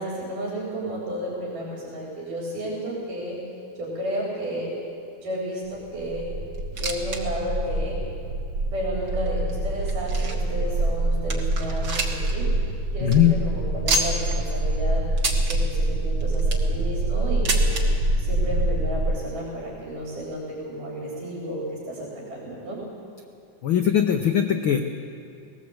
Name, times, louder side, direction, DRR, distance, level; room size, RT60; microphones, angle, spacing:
voice 1, 0.0-3.4 3.8-4.8 5.2-6.3 6.8-8.0 8.7-12.5 12.9-15.1 15.5-17.9 18.2-22.8, equal, 90° right, -4 dB, 5.2 m, -32 dB
sound 1, 5.8-19.2, right 1 dB, 65° right, 1.9 m, -25 dB
sound 2, 6.5-7.2 7.5-7.6 8.3-8.4 9.1-10.5 11.0-11.1 11.3-12.3 12.6-12.7 13.0-13.2 13.9-14.3 15.2-15.6 16.2-16.7 17.4-17.8 18.8-18.9 19.1-19.2 20.0-20.1, right 2 dB, 40° right, 2.0 m, -28 dB
voice 2, 13.0-13.3 23.6-24.8, left 10 dB, 80° left, 5 dB, 1.1 m, -20 dB
20.0 x 17.5 x 8.0 m, 2.5 s
omnidirectional pair, 3.6 m